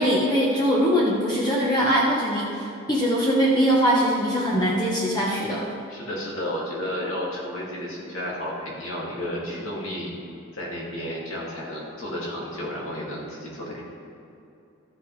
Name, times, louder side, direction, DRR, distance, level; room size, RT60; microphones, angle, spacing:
voice 1, 0.0-2.6 2.9-5.7, equal, 20° left, -5 dB, 1.0 m, -22 dB
voice 2, 5.9-10.2 10.5-13.8, equal, 75° left, -5 dB, 2.4 m, -32 dB
13.5 x 7.5 x 3.3 m, 2.7 s
head